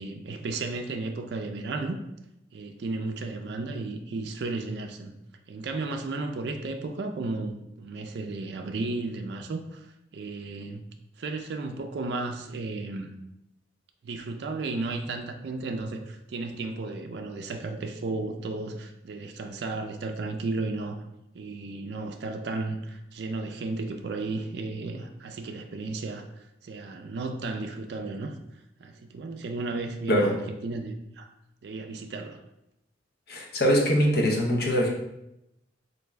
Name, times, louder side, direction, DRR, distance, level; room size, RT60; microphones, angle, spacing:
voice 1, 0.0-2.0 2.5-5.1 5.5-9.9 10.1-10.9 11.2-13.1 14.0-21.1 21.3-28.4 28.8-31.3 31.6-32.4, right 3 dB, 60° right, 5 dB, 0.4 m, -34 dB
voice 2, 30.1-30.4 33.3-34.9, equal, 55° left, 0 dB, 0.6 m, -23 dB
3.4 x 2.6 x 3.1 m, 0.85 s
head